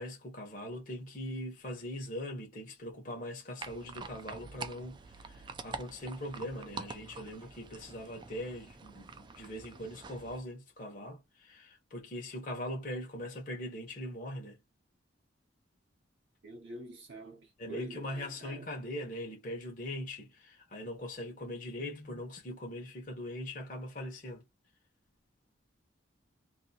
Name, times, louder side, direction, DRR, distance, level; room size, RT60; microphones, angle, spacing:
voice 1, 0.0-14.6 17.6-24.4, left 1 dB, 45° left, 0.9 m, -41 dB
sound 1, 3.6-10.4, right 4 dB, 25° right, 0.3 m, -46 dB
voice 2, 16.4-18.7, right 1 dB, 65° right, 0.7 m, -46 dB
2.6 x 2.6 x 2.7 m
head